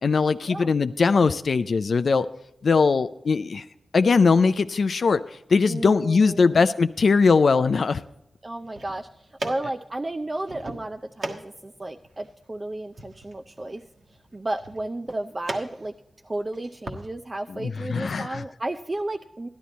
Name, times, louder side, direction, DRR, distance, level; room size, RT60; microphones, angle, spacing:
voice 1, 0.0-2.3 2.6-3.6 3.9-5.2 5.5-8.0 17.5-18.4, left 4 dB, 65° left, 11 dB, 0.4 m, -20 dB
voice 2, 5.7-6.7 8.4-13.8 14.3-15.9 16.2-19.5, right 2 dB, 30° right, 5 dB, 0.4 m, -33 dB
sound 1, 8.5-17.0, right 2 dB, 55° right, 1.4 m, -40 dB
12.0 x 11.5 x 4.1 m, 0.87 s
wide cardioid pair, 90°, 0 cm